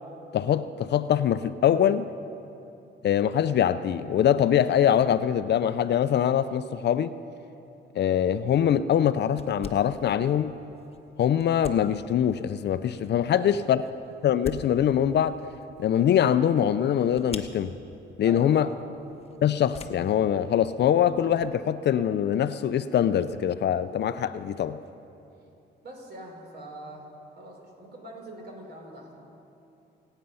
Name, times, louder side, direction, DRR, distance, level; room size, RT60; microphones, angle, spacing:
voice 1, 0.3-2.1 3.0-7.1 7.9-10.6 11.2-13.8 14.2-15.4 15.8-17.7 18.2-18.7 19.4-24.8, left 9 dB, 60° left, 0.5 m, -23 dB
sound 1, 8.0-21.6, left 4 dB, 30° left, 1.1 m, -48 dB
voice 2, 18.2-18.9 25.8-27.1 27.4-29.2, right 1 dB, 55° right, 4.1 m, -42 dB
25.0 x 9.1 x 5.6 m
cardioid pair, 90°, 20 cm